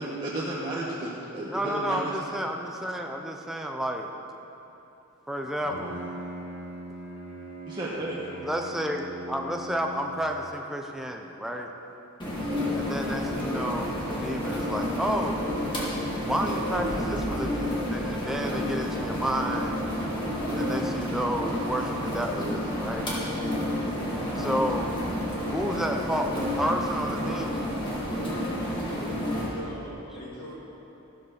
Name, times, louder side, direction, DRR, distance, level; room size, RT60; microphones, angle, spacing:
voice 1, 0.0-2.0 7.7-8.2, right 1 dB, 20° right, -8 dB, 1.2 m, -33 dB
voice 2, 1.5-4.1 5.3-6.0 8.4-11.7 12.7-15.4 16.3-19.7 20.5-23.1 24.4-24.9 25.5-27.6, equal, ahead, 1 dB, 0.6 m, -31 dB
Bowed string instrument, 5.4-10.5, right 1 dB, 60° left, 2.2 m, -41 dB
sound 1, 12.2-29.5, left 1 dB, 20° left, 2.1 m, -30 dB
voice 3, 28.6-30.6, left 1 dB, 85° left, -5 dB, 3.1 m, -42 dB
14.5 x 7.2 x 6.4 m, 3.0 s
head